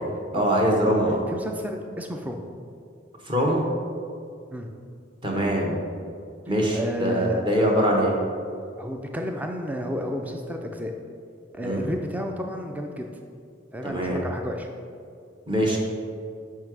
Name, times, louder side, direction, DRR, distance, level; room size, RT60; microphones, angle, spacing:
voice 1, 0.3-1.2 3.3-3.6 5.2-5.8 6.5-8.1 11.6-11.8 13.8-14.2 15.5-15.8, equal, 25° right, -1 dB, 1.3 m, -23 dB
voice 2, 1.3-2.4 4.5-4.7 6.7-7.7 8.8-10.9 11.5-13.1 13.7-14.7 15.7-15.8, equal, 10° right, 3 dB, 0.4 m, -31 dB
5.6 x 5.5 x 6.2 m, 2.3 s
head